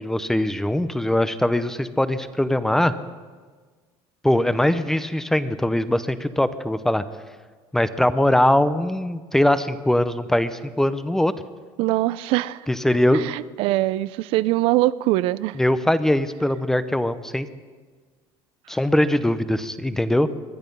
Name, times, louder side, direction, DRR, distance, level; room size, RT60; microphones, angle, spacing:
voice 1, 0.0-2.9 4.2-7.0 7.7-11.3 12.7-13.2 15.6-17.5 18.7-20.3, left 1 dB, 5° left, 13 dB, 0.6 m, -21 dB
voice 2, 11.8-12.7 13.1-15.6, right 17 dB, 70° right, 17 dB, 0.4 m, -22 dB
21.5 x 12.5 x 5.4 m, 1.5 s
cardioid pair, 140°, 10 cm